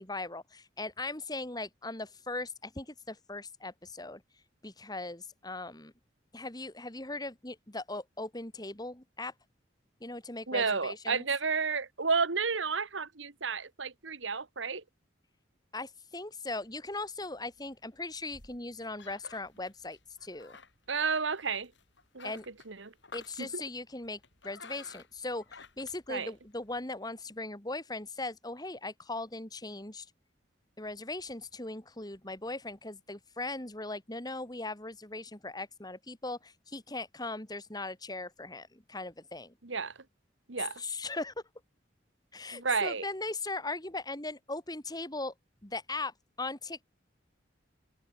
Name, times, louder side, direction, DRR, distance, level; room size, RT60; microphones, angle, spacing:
voice 1, 0.0-4.2 4.6-5.9 6.3-9.3 10.0-11.2 15.7-20.6 22.2-22.4 23.1-30.1 30.8-39.5 40.6-41.3 42.3-45.3 45.6-46.8, left 2 dB, 20° left, 2.8 m, -39 dB
voice 2, 10.5-14.8 20.9-21.7 22.1-22.3 22.7-22.9 23.4-23.5 26.1-26.3 39.6-39.9 40.5-40.8 42.5-43.0, right 5 dB, 85° right, 1.7 m, -31 dB
sound 1, 16.5-26.8, left 4 dB, 70° left, 5.3 m, -55 dB
head